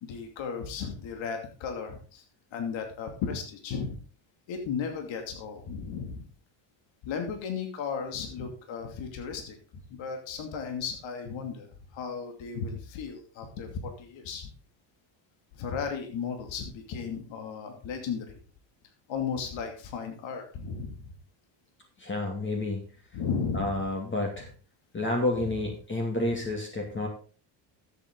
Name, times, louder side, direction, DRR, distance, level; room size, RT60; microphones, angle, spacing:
voice 1, 0.0-2.2 2.5-4.0 4.5-6.3 7.0-14.5 15.5-18.4 19.1-21.1 23.1-23.8, left 6 dB, 65° left, 4 dB, 2.7 m, -35 dB
voice 2, 22.0-22.8 23.5-24.5 24.9-27.1, left 2 dB, 25° left, 1 dB, 2.4 m, -30 dB
13.0 x 8.1 x 3.9 m, 0.39 s
cardioid pair, 125°, 50 cm